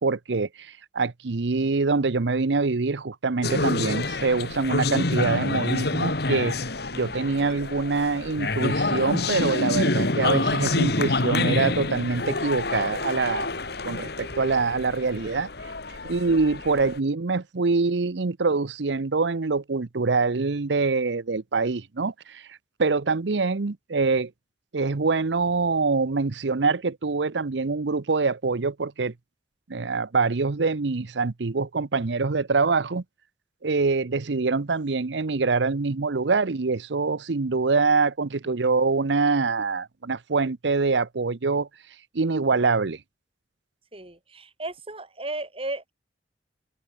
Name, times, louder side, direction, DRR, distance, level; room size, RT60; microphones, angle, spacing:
voice 1, 0.0-6.6 6.9-13.6 13.8-15.5 16.1-24.3 24.7-29.1 29.7-33.0 33.6-41.7 42.1-43.0, right 4 dB, 80° right, 0.8 m, -25 dB
sound 1, 3.4-17.0, left 2 dB, 60° left, 2.2 m, -27 dB
voice 2, 43.9-45.9, right 2 dB, 30° right, 7.0 m, -34 dB
head